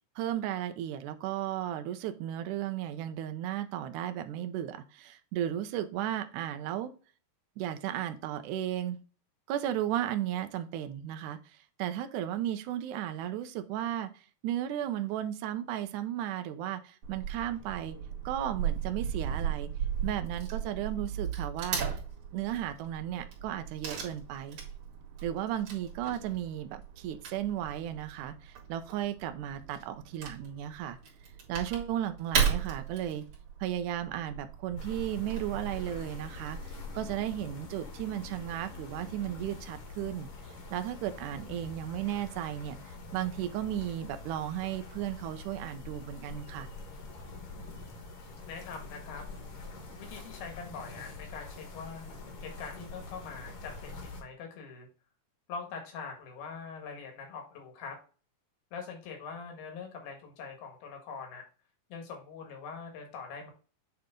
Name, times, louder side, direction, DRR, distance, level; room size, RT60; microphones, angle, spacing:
voice 1, 0.2-6.9 7.6-9.0 9.5-18.0 18.3-19.7 20.0-21.8 22.3-24.6 25.2-31.0 31.5-33.3 33.6-40.3 40.7-42.8 43.1-46.7, right 11 dB, 80° right, 9 dB, 1.8 m, -35 dB
Wood / Tearing, 17.0-36.6, right 7 dB, 55° right, 3.3 m, -37 dB
sound 1, 34.8-54.2, left 3 dB, 50° left, 1.9 m, -45 dB
voice 2, 48.5-49.2 50.0-52.1 52.4-54.9 55.5-58.0 58.7-61.4 61.9-63.5, left 5 dB, 80° left, 3 dB, 3.5 m, -43 dB
8.6 x 3.4 x 3.7 m, 0.37 s
omnidirectional pair, 4.2 m